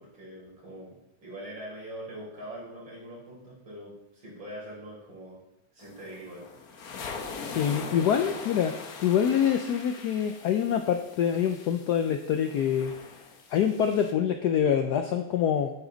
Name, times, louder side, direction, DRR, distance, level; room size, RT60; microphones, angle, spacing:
voice 1, 0.0-5.4 5.7-6.7, right 1 dB, 65° right, -6 dB, 4.8 m, -43 dB
sound 1, 5.8-14.1, left 4 dB, 55° left, 1.3 m, -42 dB
voice 2, 7.4-8.7 9.0-12.9 13.5-15.7, left 8 dB, 75° left, 7 dB, 0.9 m, -25 dB
9.0 x 8.3 x 3.9 m, 0.86 s
omnidirectional pair, 2.3 m